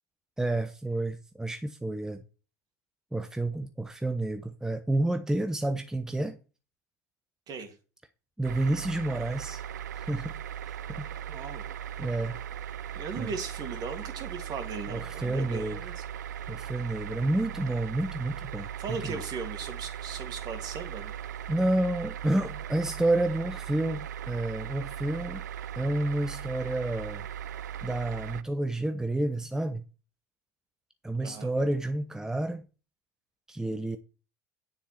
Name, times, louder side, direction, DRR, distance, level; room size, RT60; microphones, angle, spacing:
voice 1, 0.4-2.2 3.1-6.4 8.4-9.6 9.9-10.4 10.7-11.1 12.0-12.4 13.2-13.3 14.9-15.9 16.5-19.2 21.5-25.4 25.8-27.2 27.8-29.8 31.0-32.6 33.5-34.0, right 1 dB, 5° right, 0.9 m, -30 dB
sound 1, 8.4-28.4, right 10 dB, 80° right, 0.5 m, -38 dB
voice 2, 11.3-11.8 12.9-16.0 18.8-21.1 31.1-31.5, right 5 dB, 45° right, 2.7 m, -38 dB
9.6 x 7.1 x 4.6 m
hypercardioid pair, 75°, 9 cm